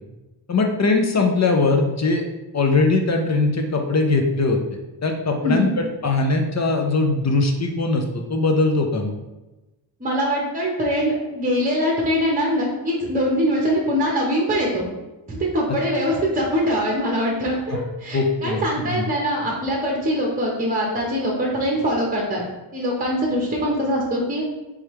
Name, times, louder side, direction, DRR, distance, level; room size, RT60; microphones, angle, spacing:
voice 1, 0.5-2.2 2.5-4.6 5.0-9.2 15.7-15.8 17.7-17.8 18.1-19.0, left 3 dB, 35° left, 3 dB, 0.6 m, -21 dB
voice 2, 10.0-14.9 15.3-22.4 22.7-24.4, equal, 15° right, -2 dB, 0.9 m, -23 dB
3.4 x 3.2 x 3.1 m, 1.0 s
cardioid pair, 60°, 48 cm